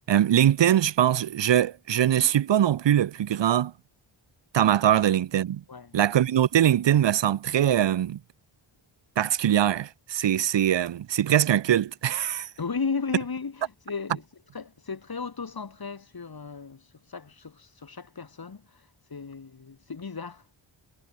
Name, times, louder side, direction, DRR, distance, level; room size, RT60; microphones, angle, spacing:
voice 1, 0.1-3.7 4.5-5.6 5.9-8.2 9.2-12.5, right 10 dB, 60° right, 0.7 m, -22 dB
voice 2, 12.6-14.2 14.5-20.5, left 5 dB, 45° left, 3.1 m, -35 dB
wide cardioid pair, 120°, 49 cm